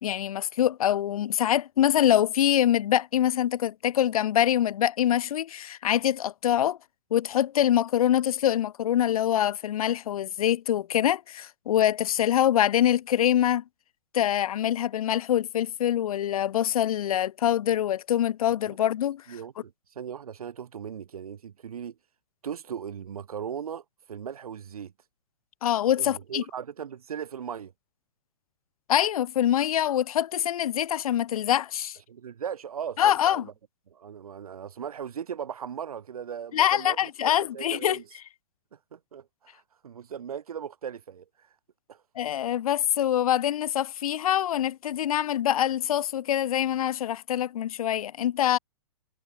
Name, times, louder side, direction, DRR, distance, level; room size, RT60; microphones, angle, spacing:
voice 1, 0.0-6.8 7.1-13.6 14.1-19.2 25.6-26.4 28.9-32.0 33.0-33.5 36.5-38.0 42.2-48.6, left 11 dB, 80° left, 0.5 m, -24 dB
voice 2, 19.3-22.0 22.4-24.9 26.0-27.7 32.1-33.5 33.9-38.0 38.7-41.5 41.9-42.0, right 8 dB, 85° right, 5.0 m, -38 dB
hypercardioid pair, 175°, 18 cm